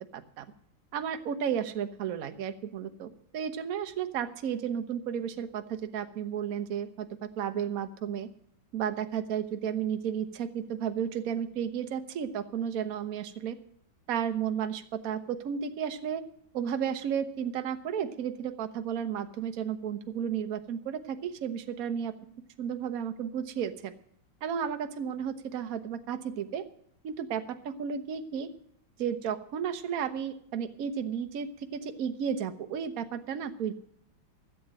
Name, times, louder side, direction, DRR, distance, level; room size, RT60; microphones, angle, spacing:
voice 1, 0.1-0.4 0.9-8.3 8.7-13.6 14.1-16.2 16.5-22.1 22.6-23.9 24.4-26.6 27.0-28.5 29.0-33.7, right 8 dB, 55° right, 8 dB, 1.2 m, -33 dB
14.5 x 7.6 x 7.4 m, 0.67 s
omnidirectional pair, 2.2 m